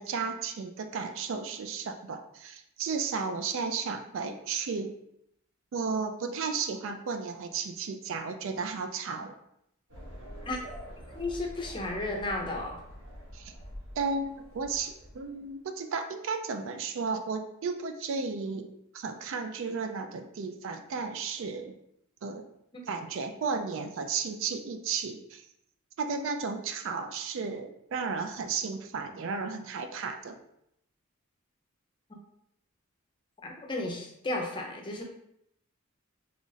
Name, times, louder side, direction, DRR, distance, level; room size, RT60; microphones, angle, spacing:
voice 1, 0.0-4.9 5.7-9.3 13.3-13.5 14.0-18.7 18.9-21.7 22.2-22.4 22.9-25.4 26.0-30.4, right 5 dB, 60° right, 7 dB, 0.3 m, -34 dB
sound 1, 9.9-15.5, equal, 85° right, 1.0 m, -46 dB
voice 2, 11.1-12.8 22.7-22.8 33.4-35.0, left 2 dB, 20° left, 1 dB, 0.5 m, -33 dB
3.0 x 2.4 x 3.9 m, 0.77 s
head